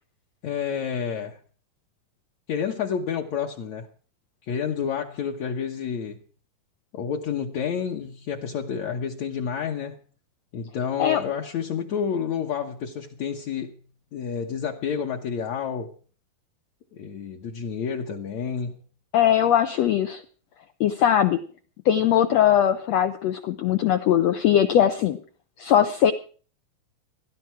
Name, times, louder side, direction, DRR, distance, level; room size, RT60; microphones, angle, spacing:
voice 1, 0.4-1.4 2.5-3.9 4.5-6.2 6.9-10.0 10.5-13.8 14.1-15.9 16.9-18.8, left 7 dB, 60° left, 2.0 m, -29 dB
voice 2, 19.1-20.2 20.8-21.4 21.8-25.2 25.6-26.1, left 10 dB, 85° left, 1.5 m, -20 dB
17.0 x 13.0 x 4.5 m
omnidirectional pair, 4.2 m